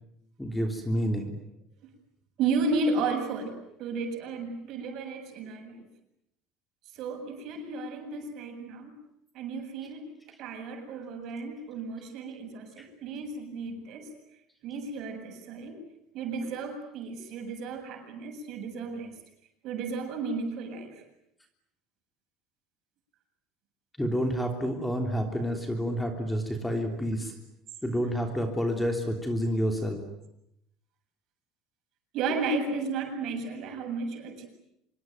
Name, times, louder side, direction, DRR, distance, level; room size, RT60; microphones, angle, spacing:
voice 1, 0.4-1.3 12.8-12.9 24.0-27.3 27.8-30.0, equal, 5° left, 4 dB, 3.3 m, -29 dB
voice 2, 2.4-5.9 6.9-9.0 9.3-10.1 10.4-14.1 14.6-15.8 16.1-19.1 19.6-21.0 27.8-28.1 32.1-34.5, right 3 dB, 55° right, 4 dB, 7.6 m, -33 dB
26.0 x 23.5 x 9.4 m, 0.80 s
cardioid pair, 145°, 0 cm